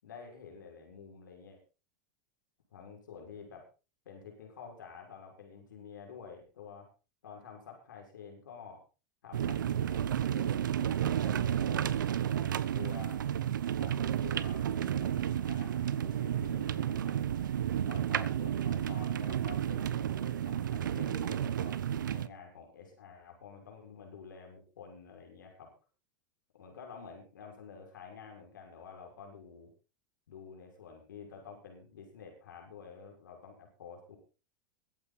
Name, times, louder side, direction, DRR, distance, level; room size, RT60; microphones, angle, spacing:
voice 1, 0.0-1.6 2.7-3.6 4.0-6.9 7.2-8.8 9.2-11.9 12.3-13.2 13.8-17.2 17.8-21.8 22.1-25.7 26.5-29.7 30.3-34.2, left 6 dB, 85° left, 2 dB, 6.5 m, -49 dB
sound 1, 9.3-22.3, right 10 dB, 85° right, 1.0 m, -32 dB
22.5 x 9.0 x 4.3 m, 0.34 s
hypercardioid pair, 110°, 10 cm